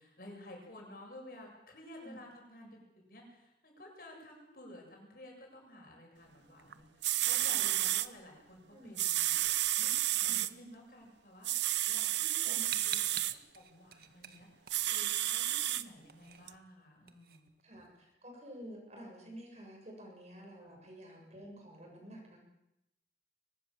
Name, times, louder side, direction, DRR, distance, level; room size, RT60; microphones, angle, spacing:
voice 1, 0.0-13.2 13.5-17.5 20.6-20.8, left 1 dB, 55° left, 0 dB, 7.5 m, -53 dB
sound 1, 6.7-6.8 7.0-8.1 9.0-10.5 11.4-13.3 14.7-15.8 16.5-16.6, right 14 dB, 80° right, 0.9 m, -31 dB
voice 2, 12.4-12.7 17.6-22.4, equal, 40° right, 0 dB, 7.4 m, -50 dB
sound 2, 12.7-15.4 15.7-18.1, right 9 dB, 55° right, 1.7 m, -47 dB
23.0 x 20.0 x 7.4 m, 0.88 s
head